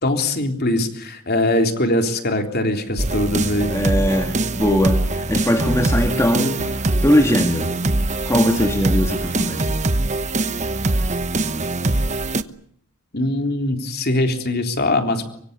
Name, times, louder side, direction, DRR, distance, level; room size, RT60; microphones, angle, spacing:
voice 1, 0.0-3.8 13.1-15.2, left 1 dB, 45° left, 5 dB, 3.7 m, -21 dB
sound 1, 3.0-12.4, right 2 dB, 30° right, 1.1 m, -22 dB
voice 2, 3.7-7.8 8.3-9.8, equal, 15° left, 4 dB, 2.0 m, -20 dB
24.5 x 24.5 x 8.2 m, 0.65 s
head